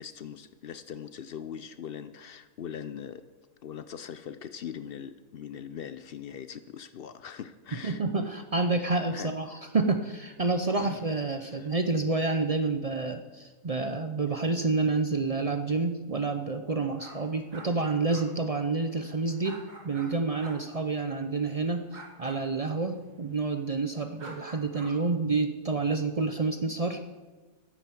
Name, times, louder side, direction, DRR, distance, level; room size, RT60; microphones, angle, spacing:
voice 1, 0.0-3.3 3.6-8.0 9.1-9.6 10.8-11.0 11.4-11.7, left 8 dB, 80° left, 12 dB, 0.5 m, -41 dB
voice 2, 7.8-21.8 22.2-27.0, right 3 dB, 70° right, 7 dB, 0.3 m, -29 dB
sound 1, 17.0-20.1 20.4-20.6 21.9-22.4 24.2-24.9, right 2 dB, 90° right, 3.1 m, -47 dB
12.5 x 10.0 x 7.6 m, 1.3 s
omnidirectional pair, 1.7 m